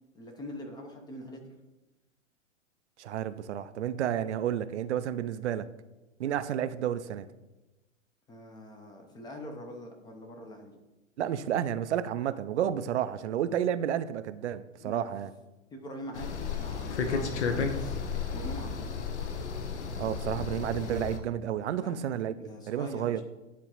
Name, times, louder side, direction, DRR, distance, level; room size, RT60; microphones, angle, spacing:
voice 1, 0.1-1.5 8.3-10.7 14.8-15.1 15.7-18.9 21.7-22.0 22.4-23.2, equal, 10° left, 3 dB, 0.5 m, -43 dB
voice 2, 3.0-5.6 6.2-7.3 11.2-15.3 20.0-22.3 22.7-23.2, right 10 dB, 65° right, 12 dB, 0.5 m, -31 dB
sound 1, 16.1-21.2, left 5 dB, 65° left, 0.9 m, -33 dB
10.0 x 3.7 x 2.9 m, 1.1 s
figure-of-eight pair, 110°, 38 cm